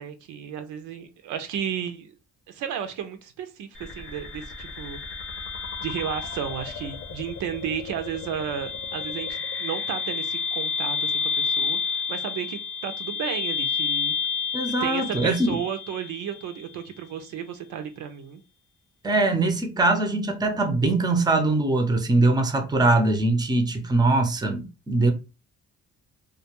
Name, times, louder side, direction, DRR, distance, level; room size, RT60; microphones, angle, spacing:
voice 1, 0.0-2.1 2.5-5.0 5.8-9.3 9.6-14.1 14.6-18.4, right 8 dB, 80° right, 0.5 m, -33 dB
sound 1, 3.8-16.8, left 5 dB, 45° left, 0.7 m, -30 dB
voice 2, 14.5-15.6 19.0-25.1, right 2 dB, 15° right, 0.5 m, -22 dB
2.3 x 2.2 x 2.9 m
cardioid pair, 90°, 30 cm